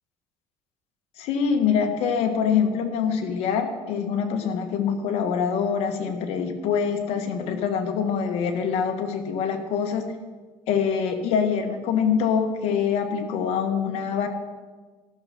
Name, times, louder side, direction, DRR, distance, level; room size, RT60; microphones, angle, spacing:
voice 1, 1.2-10.1 10.7-14.3, left 7 dB, 75° left, 6 dB, 1.3 m, -24 dB
13.5 x 6.3 x 5.8 m, 1.4 s
cardioid pair, 110°, 11 cm